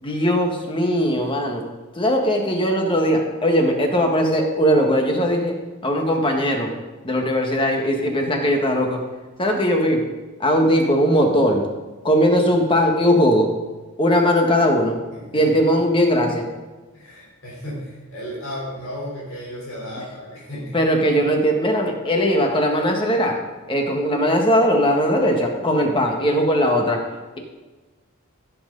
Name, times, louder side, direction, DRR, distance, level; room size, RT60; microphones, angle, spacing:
voice 1, 0.0-1.6 1.9-6.7 7.0-9.0 9.4-10.0 10.4-11.6 12.0-13.5 14.0-15.0 15.3-16.5 20.7-23.4 23.7-27.0, equal, 25° left, 2 dB, 1.5 m, -19 dB
voice 2, 15.1-15.5 16.9-20.9, equal, 70° left, -5 dB, 3.8 m, -34 dB
16.5 x 7.7 x 4.0 m, 1.3 s
head